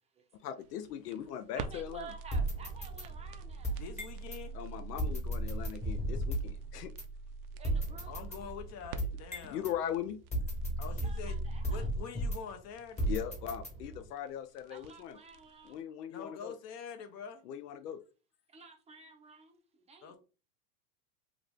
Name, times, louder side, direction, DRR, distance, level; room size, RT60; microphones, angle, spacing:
voice 1, 0.3-2.1 4.5-6.9 9.4-10.2 13.1-15.2 15.6-16.6 17.5-18.0, left 9 dB, 85° left, 0.5 m, -39 dB
sound 1, 0.6-15.8, right 5 dB, 65° right, 0.6 m, -47 dB
voice 2, 1.6-3.8 7.6-8.2 11.0-11.9 14.7-15.8 18.5-19.6 19.9-20.2, right 5 dB, 15° right, 0.6 m, -51 dB
sound 2, 2.3-4.4 5.0-6.6 7.0-7.1 7.6-9.7 10.3-12.6 13.0-14.1, right 1 dB, 15° left, 1.1 m, -35 dB
voice 3, 3.7-4.6 8.1-9.7 10.8-11.4 11.6-13.0 16.1-17.4 20.0-20.2, left 7 dB, 35° left, 0.7 m, -45 dB
2.9 x 2.5 x 3.4 m
hypercardioid pair, 115°, 47 cm